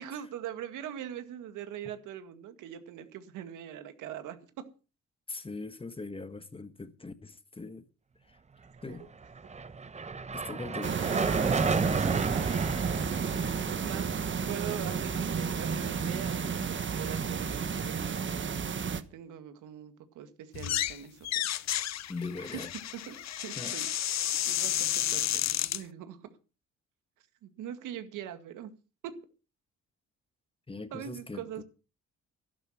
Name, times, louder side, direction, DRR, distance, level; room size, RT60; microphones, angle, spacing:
voice 1, 0.0-4.4 8.7-9.0 13.7-18.6 18.9-21.5 22.4-22.6 23.1-26.2 27.4-28.7 29.0-29.1 30.9-31.6, right 10 dB, 90° right, 2.0 m, -42 dB
voice 2, 5.3-7.9 8.3-8.4 8.8-9.1 10.3-11.0 22.1-22.7 23.6-23.8 30.7-31.6, left 3 dB, 20° left, 1.2 m, -40 dB
sound 1, 9.2-17.6, right 4 dB, 25° right, 0.8 m, -33 dB
sound 2, 10.8-19.0, right 6 dB, 40° right, 1.3 m, -32 dB
sound 3, 20.5-21.0 21.2-25.8, left 12 dB, 60° left, 0.8 m, -31 dB
12.0 x 12.0 x 5.9 m
cardioid pair, 90°, 30 cm